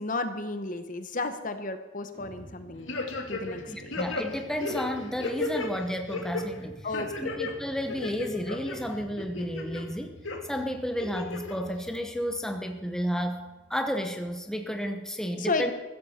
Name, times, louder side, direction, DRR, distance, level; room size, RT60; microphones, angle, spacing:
voice 1, 0.0-3.0 3.3-3.9 6.8-7.4 15.4-15.7, left 3 dB, 40° left, 9 dB, 1.0 m, -33 dB
sound 1, 2.1-14.4, right 1 dB, 40° right, 1.6 m, -50 dB
sound 2, 2.9-3.6 3.9-5.7 6.1-6.4 6.9-7.5 7.9-8.7 9.2-9.8 10.2-10.4 11.0-11.6 11.9-12.0, left 3 dB, 75° left, 2.0 m, -33 dB
voice 2, 3.7-6.9 7.2-10.2 10.5-15.7, equal, 5° left, 5 dB, 0.9 m, -32 dB
15.0 x 14.0 x 4.3 m, 1.2 s
head